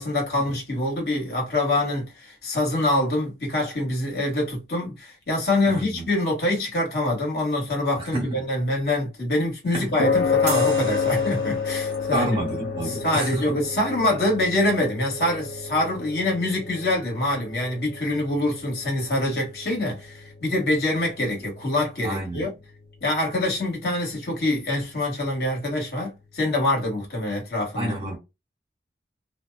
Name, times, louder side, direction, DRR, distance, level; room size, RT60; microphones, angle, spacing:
voice 1, 0.0-12.3 12.9-22.5 23.0-28.1, left 1 dB, 60° left, 1.3 m, -25 dB
voice 2, 5.7-6.1 8.0-8.4 9.7-9.9 12.1-13.6 22.0-22.5 27.8-28.2, right 1 dB, 35° right, 1.3 m, -29 dB
sound 1, 10.0-26.5, left 5 dB, 75° left, 0.8 m, -31 dB
sound 2, 10.5-12.1, right 6 dB, 60° right, 0.8 m, -36 dB
2.6 x 2.2 x 2.2 m
head